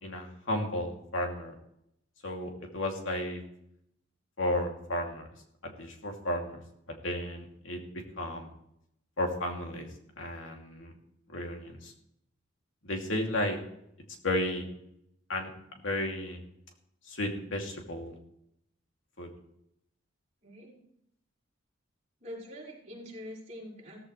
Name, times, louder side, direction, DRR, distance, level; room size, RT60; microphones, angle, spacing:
voice 1, 0.0-1.5 2.2-3.4 4.4-5.3 5.6-6.6 6.9-7.8 8.2-8.5 9.2-9.9 10.2-10.9 11.3-11.9 12.8-13.6 14.2-14.7 15.3-15.5 15.8-16.4 17.1-18.1 19.2-19.3, left 1 dB, 75° left, 2 dB, 2.7 m, -33 dB
voice 2, 20.4-20.8 22.2-24.0, equal, 35° right, -5 dB, 5.3 m, -44 dB
16.5 x 14.5 x 3.3 m, 0.77 s
head